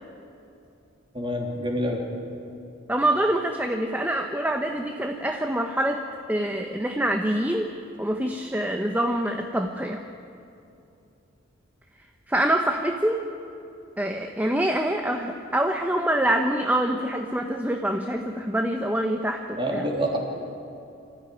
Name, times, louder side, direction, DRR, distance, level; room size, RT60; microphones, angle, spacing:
voice 1, 1.1-2.0 19.6-20.2, equal, 25° right, 0 dB, 3.2 m, -27 dB
voice 2, 2.9-6.0 6.3-7.7 8.0-10.0 12.3-13.2 14.0-19.9, right 1 dB, 10° right, 4 dB, 0.9 m, -25 dB
25.0 x 14.5 x 10.0 m, 2.7 s
head